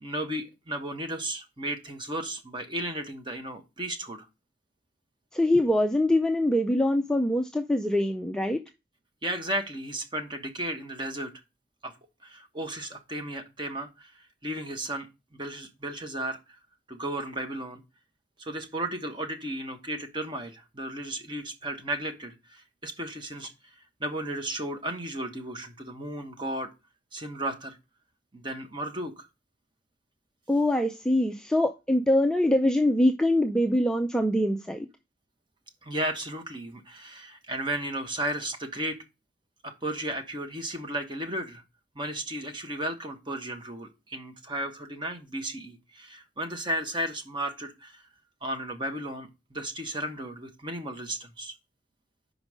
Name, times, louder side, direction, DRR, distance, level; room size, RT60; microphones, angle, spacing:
voice 1, 0.0-4.2 9.2-11.3 11.8-11.9 12.2-14.1 14.4-15.1 15.3-16.6 16.9-17.8 18.4-23.5 24.0-26.7 27.1-27.8 28.3-29.3 35.8-39.0 39.6-41.6 41.9-48.0 48.4-51.5, right 1 dB, 25° right, 1.1 m, -34 dB
voice 2, 5.3-8.6 30.5-34.9, left 1 dB, 5° left, 0.4 m, -24 dB
5.3 x 5.1 x 6.1 m
head